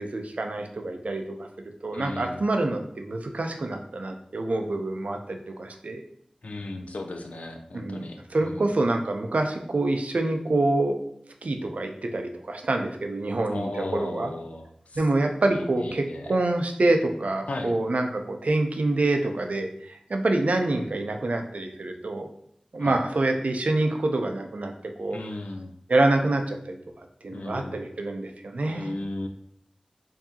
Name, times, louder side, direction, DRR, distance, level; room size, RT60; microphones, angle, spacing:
voice 1, 0.0-1.5 1.8-6.0 7.7-10.9 11.4-14.3 15.0-22.3 22.7-24.7 25.0-25.2 25.9-26.8 27.2-28.9, right 2 dB, 80° right, 4 dB, 0.5 m, -26 dB
voice 2, 1.9-2.4 6.4-8.7 13.5-15.0 15.5-16.4 17.5-17.7 22.8-23.0 25.1-25.7 27.3-27.8 28.7-29.3, left 2 dB, 90° left, 4 dB, 0.4 m, -36 dB
4.7 x 2.7 x 2.7 m, 0.69 s
wide cardioid pair, 55°, 2 cm